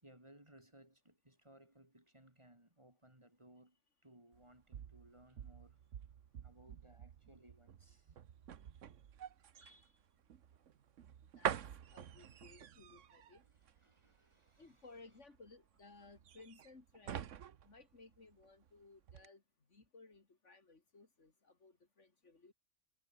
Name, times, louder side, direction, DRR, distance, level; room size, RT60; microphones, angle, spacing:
voice 1, 0.0-3.8 4.0-5.8 6.4-8.2 8.6-8.8 9.5-10.2 13.4-15.2, right 1 dB, 25° right, 3.5 m, -64 dB
sound 1, 4.3-18.7 19.0-19.3, right 9 dB, 75° right, 1.3 m, -47 dB
voice 2, 11.2-11.6 11.9-13.4 14.6-17.3 17.6-19.4 19.7-22.5, left 3 dB, 70° left, 3.2 m, -60 dB
omnidirectional pair, 1.3 m